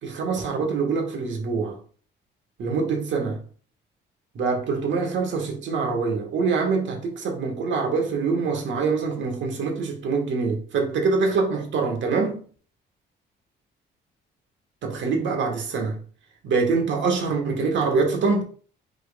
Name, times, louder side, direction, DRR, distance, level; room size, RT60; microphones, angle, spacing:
voice 1, 0.0-1.8 2.6-3.4 4.3-12.4 14.8-16.0 16.4-18.4, right 4 dB, 70° right, 1.5 m, -24 dB
5.1 x 4.5 x 2.3 m
cardioid pair, 90°, 20 cm